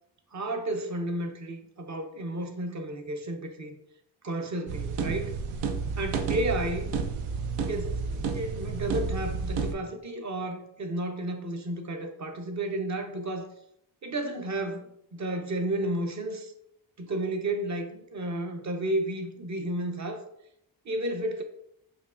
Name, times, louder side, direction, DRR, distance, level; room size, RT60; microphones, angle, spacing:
voice 1, 0.3-3.7 4.2-5.3 6.0-6.9 7.7-13.5 14.0-16.5 17.0-20.3 20.8-21.4, right 1 dB, 35° right, 0.7 m, -32 dB
sound 1, 4.7-9.7, right 5 dB, 75° right, 0.6 m, -31 dB
5.2 x 2.4 x 2.5 m
supercardioid pair, 45°, 50 cm